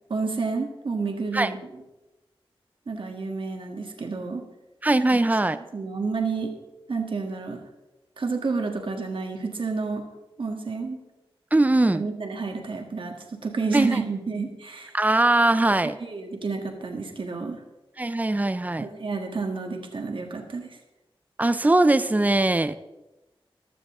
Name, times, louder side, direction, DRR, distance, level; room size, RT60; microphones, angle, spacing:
voice 1, 0.1-1.6 2.9-4.4 5.1-5.2 5.7-6.5 6.9-7.6 8.2-10.1 10.4-11.0 11.9-14.9 15.8-17.6 18.8-20.8, right 4 dB, 60° right, 3 dB, 1.7 m, -30 dB
voice 2, 4.8-5.6 11.5-12.0 13.7-14.0 14.9-16.0 18.0-18.9 21.4-22.8, right 2 dB, 15° right, 12 dB, 0.6 m, -21 dB
15.0 x 13.0 x 3.7 m, 1.0 s
wide cardioid pair, 110°, 10 cm